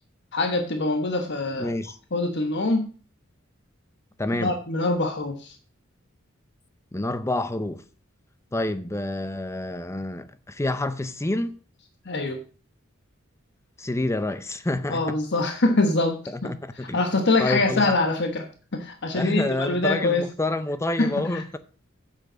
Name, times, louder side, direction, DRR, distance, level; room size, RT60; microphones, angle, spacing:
voice 1, 0.3-1.7 2.1-2.8 4.4-5.6 12.0-12.4 14.9-16.5 16.9-20.3 21.0-21.6, left 2 dB, 55° left, 1.2 m, -24 dB
voice 2, 1.6-2.0 4.2-4.5 6.9-7.8 8.5-11.6 13.8-15.2 16.3-17.0 17.4-18.0 19.1-21.6, left 2 dB, 15° left, 0.5 m, -28 dB
8.0 x 7.2 x 6.3 m
head